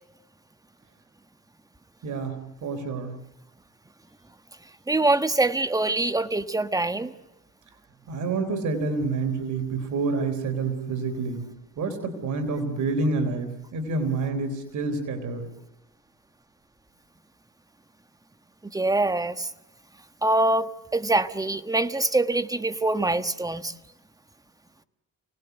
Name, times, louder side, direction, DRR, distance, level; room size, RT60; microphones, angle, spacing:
voice 1, 2.0-3.2 8.1-11.5 11.8-15.5, right 3 dB, 75° right, 7 dB, 3.8 m, -28 dB
voice 2, 4.9-7.1 18.7-19.5 20.2-23.7, right 2 dB, 10° right, 10 dB, 1.4 m, -24 dB
29.5 x 19.0 x 8.1 m, 1.0 s
cardioid pair, 90°, 30 cm